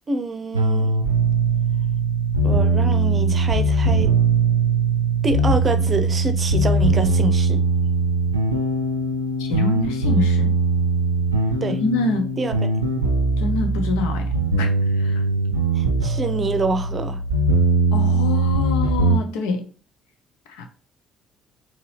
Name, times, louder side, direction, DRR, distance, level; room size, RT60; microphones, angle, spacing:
voice 1, 0.1-0.9 2.4-4.1 5.2-7.6 11.6-11.8 12.4-12.5 15.7-17.2, right 3 dB, 35° right, 0.6 m, -26 dB
sound 1, 0.5-19.2, right 3 dB, 90° right, 0.5 m, -20 dB
voice 2, 9.4-10.5 11.7-12.4 13.4-15.2 17.9-19.7 20.5-20.7, left 2 dB, 70° left, 0.8 m, -26 dB
4.7 x 2.9 x 3.3 m
figure-of-eight pair, 50°, 0 cm